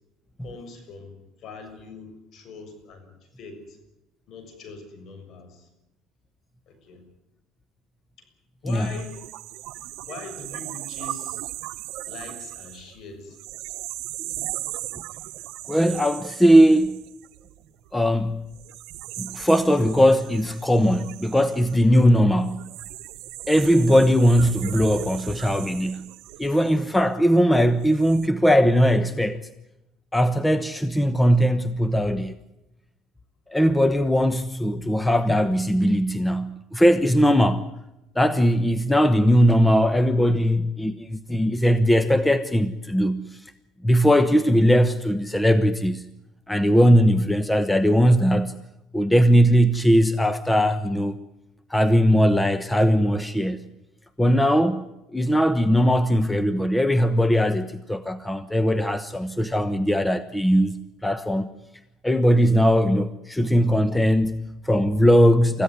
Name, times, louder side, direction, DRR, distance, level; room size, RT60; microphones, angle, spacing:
voice 1, 0.4-1.1 1.4-3.8 4.3-5.7 6.7-7.0 8.6-9.2 10.1-11.4 12.1-13.4, left 4 dB, 55° left, 6.8 m, -42 dB
voice 2, 8.6-9.0 15.7-17.0 17.9-18.4 19.2-22.7 23.5-26.1 26.4-29.4 30.1-32.4 33.5-37.7 38.1-43.5 43.8-46.0 46.5-48.6 48.9-51.2 51.7-53.6 54.2-54.9 55.1-61.5 62.0-65.6, equal, 10° left, 1.0 m, -19 dB
sound 1, 8.7-17.9 18.5-27.3 27.8-28.3, right 16 dB, 75° right, 1.1 m, -38 dB
25.0 x 15.5 x 9.7 m
supercardioid pair, 105°, 0 cm